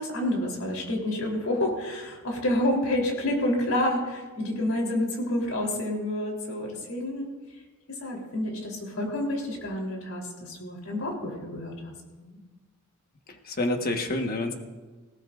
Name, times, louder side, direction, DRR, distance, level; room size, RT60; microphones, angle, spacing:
voice 1, 0.0-7.3 7.9-12.4, left 1 dB, 80° left, 0 dB, 3.6 m, -29 dB
voice 2, 13.3-14.5, left 2 dB, 45° left, 4 dB, 1.4 m, -28 dB
19.0 x 17.5 x 2.5 m, 1.3 s
head